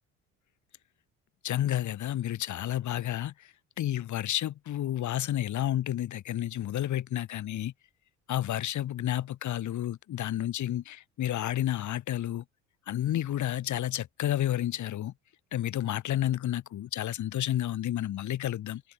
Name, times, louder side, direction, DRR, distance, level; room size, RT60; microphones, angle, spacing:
voice 1, 1.4-3.5 3.8-7.7 8.3-12.4 12.9-15.1 15.5-18.8, left 12 dB, 45° left, 1.5 m, -31 dB
hypercardioid pair, 55°, 39 cm